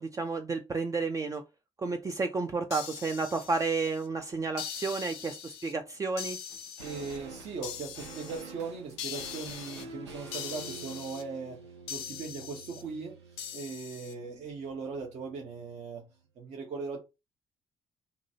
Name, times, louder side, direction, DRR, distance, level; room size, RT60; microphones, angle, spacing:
voice 1, 0.0-1.4 1.8-6.4, right 4 dB, 25° right, 0.4 m, -31 dB
sound 1, 2.7-4.1 4.6-5.7 6.2-7.2 7.6-8.4 9.0-9.8 10.3-11.2 11.9-12.8 13.4-14.1, left 8 dB, 75° left, 0.5 m, -41 dB
sound 2, 6.5-15.9 16.1-16.2, right 3 dB, 90° right, 0.5 m, -49 dB
voice 2, 6.8-11.6 11.9-16.0 16.4-17.0, right 4 dB, 55° right, 0.8 m, -39 dB
2.8 x 2.3 x 2.7 m
figure-of-eight pair, 45°, 14 cm